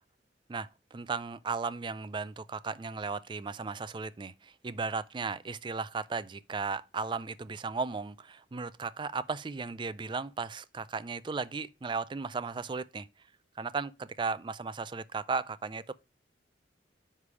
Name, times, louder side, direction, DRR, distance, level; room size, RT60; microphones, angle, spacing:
voice 1, 0.5-13.1 13.6-15.9, right 4 dB, 25° right, 0.3 m, -36 dB
9.7 x 3.3 x 4.9 m
head